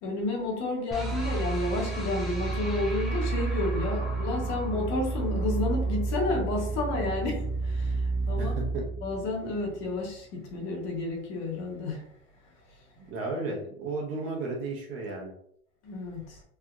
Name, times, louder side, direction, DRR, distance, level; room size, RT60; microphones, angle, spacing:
voice 1, 0.0-8.5 9.0-12.1 12.4-12.8 15.8-16.4, left 2 dB, 50° left, 1.1 m, -31 dB
sound 1, 0.9-10.0, right 3 dB, ahead, 0.4 m, -30 dB
voice 2, 8.4-8.9 13.0-15.3, right 3 dB, 40° right, 0.9 m, -34 dB
3.4 x 2.7 x 2.4 m
supercardioid pair, 150°, 34 cm